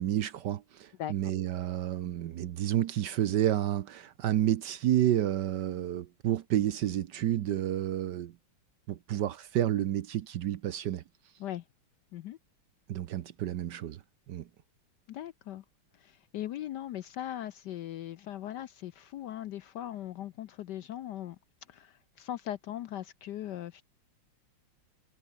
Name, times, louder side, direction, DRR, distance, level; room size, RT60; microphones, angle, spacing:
voice 1, 0.0-8.4 8.9-11.0 12.9-14.0 14.3-14.5, right 12 dB, 65° right, 1.2 m, -30 dB
voice 2, 15.1-15.6 16.0-21.4 21.7-23.8, left 12 dB, 70° left, 1.1 m, -39 dB
omnidirectional pair, 2.3 m